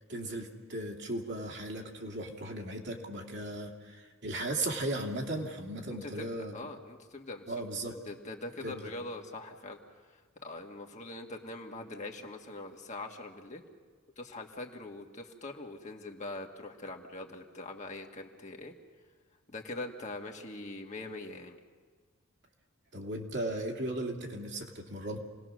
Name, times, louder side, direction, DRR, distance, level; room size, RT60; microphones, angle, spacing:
voice 1, 0.1-6.6 7.5-7.9 8.6-8.9 22.9-25.2, right 1 dB, 55° right, 1 dB, 2.7 m, -36 dB
voice 2, 5.9-7.5 7.9-9.8 10.4-13.6 14.2-18.7 19.5-21.6, left 2 dB, 35° left, 2 dB, 1.8 m, -43 dB
28.5 x 19.5 x 6.4 m, 1.5 s
head